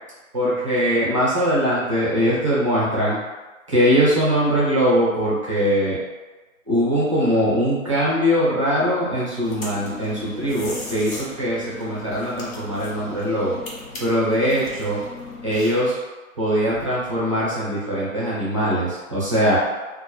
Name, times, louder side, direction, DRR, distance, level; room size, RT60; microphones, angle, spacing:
voice 1, 0.3-3.2 3.7-6.0 6.7-13.6 14.0-15.0 15.4-16.0 16.4-19.6, equal, 25° right, -8 dB, 0.4 m, -21 dB
sound 1, 9.4-15.9, left 2 dB, 75° left, 0.9 m, -37 dB
2.1 x 2.0 x 2.9 m, 1.2 s
hypercardioid pair, 155°, 41 cm